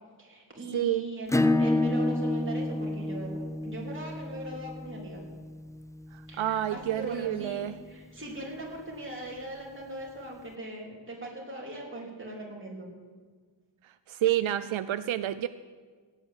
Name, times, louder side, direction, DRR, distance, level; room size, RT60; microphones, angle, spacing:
voice 1, 0.2-5.2 6.3-12.9, right 1 dB, 25° right, -2 dB, 3.6 m, -40 dB
voice 2, 0.7-1.1 6.1-7.8 13.8-15.5, right 12 dB, 85° right, 13 dB, 0.6 m, -29 dB
Acoustic guitar / Strum, 1.3-6.6, left 2 dB, 10° left, 0.3 m, -29 dB
16.5 x 9.2 x 8.4 m, 1.5 s
wide cardioid pair, 175°, 46 cm